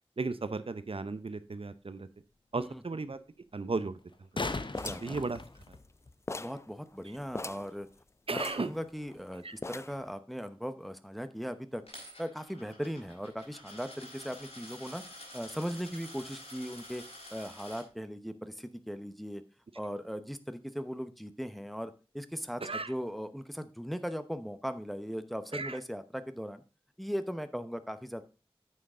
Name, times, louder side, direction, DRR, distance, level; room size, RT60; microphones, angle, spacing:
voice 1, 0.2-2.1 2.5-3.2 3.5-4.0 5.0-5.4 8.3-8.7 9.4-9.6 22.6-22.9 25.5-25.8, right 3 dB, 70° right, 13 dB, 0.7 m, -35 dB
sound 1, 1.1-1.2 4.0-6.1 9.0-9.1, left 3 dB, 55° left, 0.8 m, -38 dB
sound 2, 4.7-6.0 6.3-6.7 6.9-7.0 7.3-7.7 8.4-9.2 9.6-10.1, left 2 dB, 30° left, 0.3 m, -40 dB
voice 2, 4.8-5.2 6.4-7.9 8.3-11.8 12.2-15.0 15.3-17.0 17.3-19.4 19.7-26.6 27.0-28.2, equal, ahead, 11 dB, 0.9 m, -38 dB
Coin (dropping), 11.9-17.8, left 1 dB, 80° left, 4.1 m, -49 dB
9.3 x 6.5 x 3.6 m, 0.33 s
wide cardioid pair, 50°, 10 cm